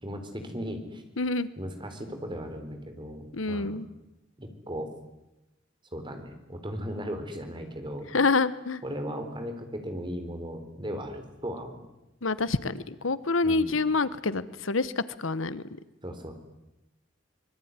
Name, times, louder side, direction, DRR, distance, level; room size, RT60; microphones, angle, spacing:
voice 1, 0.0-1.0 1.6-3.8 4.4-4.9 5.9-8.2 8.8-11.9 13.4-13.7 16.0-16.3, equal, 25° right, 6 dB, 4.0 m, -37 dB
voice 2, 1.2-1.5 3.3-3.9 8.1-8.8 12.2-15.6, left 3 dB, 85° left, 16 dB, 1.2 m, -27 dB
25.5 x 22.0 x 9.7 m, 0.98 s
head